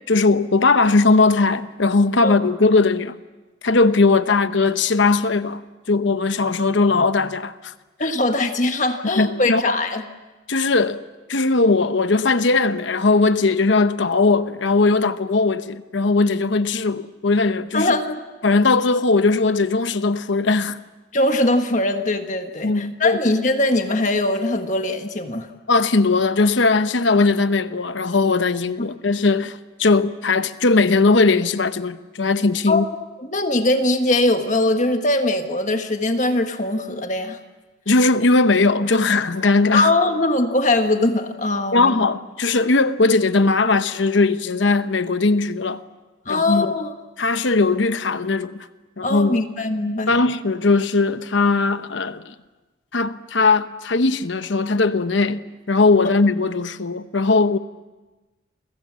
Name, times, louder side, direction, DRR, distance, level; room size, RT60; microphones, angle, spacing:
voice 1, 0.1-3.2 3.6-5.6 5.9-7.7 9.2-9.7 10.5-11.0 11.3-17.9 18.4-20.8 22.6-23.2 25.7-32.9 37.9-39.9 41.7-45.8 46.3-46.7 47.2-48.6 49.0-49.4 50.1-52.3 52.9-57.6, left 3 dB, 75° left, 0.9 m, -19 dB
voice 2, 8.0-10.0 17.7-18.2 21.1-25.5 32.7-32.8 33.2-37.4 39.7-42.1 46.2-46.9 49.0-50.2, left 2 dB, 40° left, 1.6 m, -21 dB
30.0 x 23.5 x 7.5 m
head